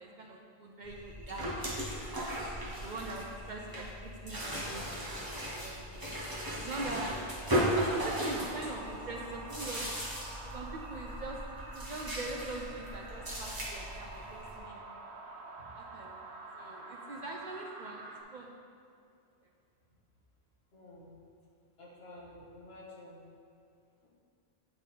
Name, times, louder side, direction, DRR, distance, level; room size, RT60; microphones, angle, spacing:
voice 1, 0.0-1.8 2.4-4.9 5.4-6.2 6.5-7.2 7.6-10.0 10.4-14.8 15.7-18.6, right 2 dB, 55° right, 0 dB, 0.6 m, -43 dB
sound 1, 0.8-14.6, equal, 20° right, 1.0 m, -37 dB
sound 2, 6.7-18.2, right 3 dB, 90° right, 1.0 m, -47 dB
voice 2, 20.7-21.1 21.8-23.2 24.0-24.1, left 1 dB, 70° left, -6 dB, 1.7 m, -51 dB
8.9 x 3.7 x 4.2 m, 2.5 s
omnidirectional pair, 1.1 m